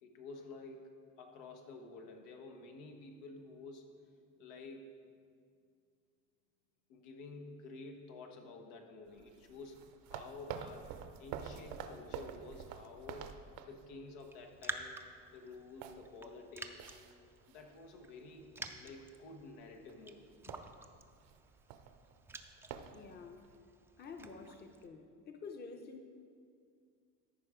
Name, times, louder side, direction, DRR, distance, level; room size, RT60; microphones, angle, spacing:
voice 1, 0.0-0.9 1.2-3.9 4.4-4.9 6.9-13.3 13.6-15.0 15.3-17.0 17.5-20.3, left 3 dB, 90° left, 3 dB, 1.3 m, -51 dB
sound 1, 9.1-14.3 14.7-14.9 15.2-18.0 18.3-18.6 19.1-19.5 19.8-19.9 20.2-23.6, right 8 dB, 65° right, 0.7 m, -48 dB
Raindrop, 14.2-24.9, right 2 dB, 5° right, 0.4 m, -50 dB
voice 2, 22.9-23.5 24.0-26.1, left 4 dB, 25° left, 5 dB, 0.7 m, -49 dB
13.5 x 5.4 x 5.0 m, 2.2 s
cardioid pair, 125°, 36 cm